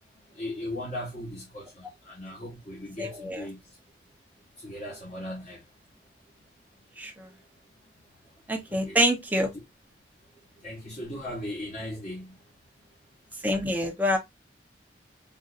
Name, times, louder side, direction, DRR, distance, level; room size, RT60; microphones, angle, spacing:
voice 1, 0.3-3.6 4.6-5.6 8.7-9.0 10.6-12.4, left 1 dB, 40° left, 1.2 m, -38 dB
voice 2, 3.0-3.4 7.0-7.3 8.5-9.5 13.4-14.2, equal, 10° right, 0.7 m, -26 dB
3.8 x 2.6 x 2.4 m
head